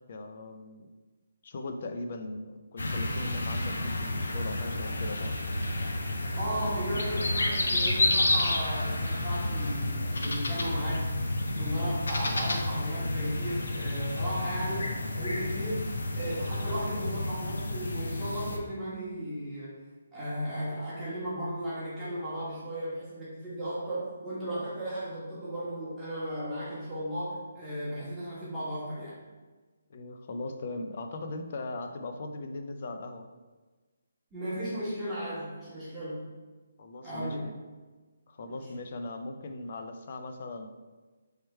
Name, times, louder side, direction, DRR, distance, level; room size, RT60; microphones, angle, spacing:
voice 1, 0.1-0.9 1.4-5.3 29.9-33.3 36.8-37.4 38.3-40.7, left 2 dB, 45° left, 6 dB, 0.4 m, -39 dB
sound 1, 2.8-18.6, left 1 dB, 85° left, 0.6 m, -30 dB
voice 2, 6.3-11.2 11.6-19.8 20.1-29.2 34.3-36.3 37.0-37.4 38.4-38.6, equal, 5° right, -12 dB, 1.3 m, -35 dB
3.2 x 3.2 x 4.4 m, 1.3 s
hypercardioid pair, 165°, 0 cm